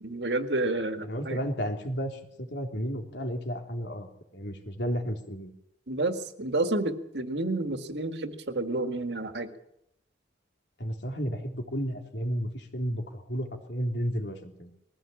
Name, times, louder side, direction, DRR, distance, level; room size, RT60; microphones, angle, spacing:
voice 1, 0.0-1.4 5.9-9.5, right 2 dB, 75° right, 8 dB, 1.9 m, -30 dB
voice 2, 1.0-4.1 4.3-5.5 10.8-14.7, equal, 80° left, 4 dB, 3.4 m, -32 dB
21.0 x 15.5 x 8.5 m, 0.78 s
head